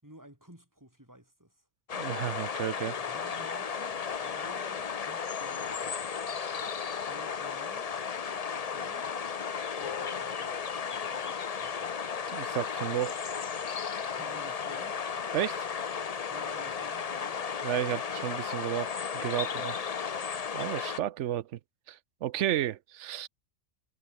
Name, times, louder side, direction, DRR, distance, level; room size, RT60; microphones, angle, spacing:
voice 1, 0.0-1.7 2.9-6.0 7.0-7.9 8.3-9.2 9.8-11.9 14.1-15.1 16.3-17.5 19.4-19.5, right 1 dB, 15° right, 5.9 m, -53 dB
sound 1, 1.9-21.0, left 6 dB, 40° left, 0.6 m, -34 dB
voice 2, 1.9-3.0 12.3-13.2 15.3-15.7 17.6-19.7 20.5-21.6 21.9-23.3, right 12 dB, 70° right, 0.9 m, -32 dB
sound 2, 9.8-14.3, left 7 dB, 65° left, 1.5 m, -49 dB
omnidirectional pair, 1.3 m